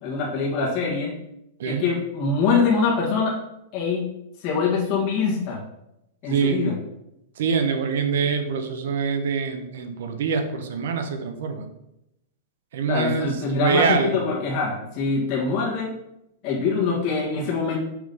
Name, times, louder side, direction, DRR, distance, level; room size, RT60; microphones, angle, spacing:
voice 1, 0.0-1.2 1.6-3.3 3.7-4.1 4.4-5.6 6.2-6.7 12.9-15.9 16.4-17.8, left 4 dB, 30° left, -4 dB, 1.9 m, -24 dB
voice 2, 6.3-6.6 7.4-11.7 12.7-14.2, right 5 dB, 65° right, 7 dB, 1.0 m, -25 dB
6.0 x 3.9 x 5.4 m, 0.85 s
supercardioid pair, 170°, 0 cm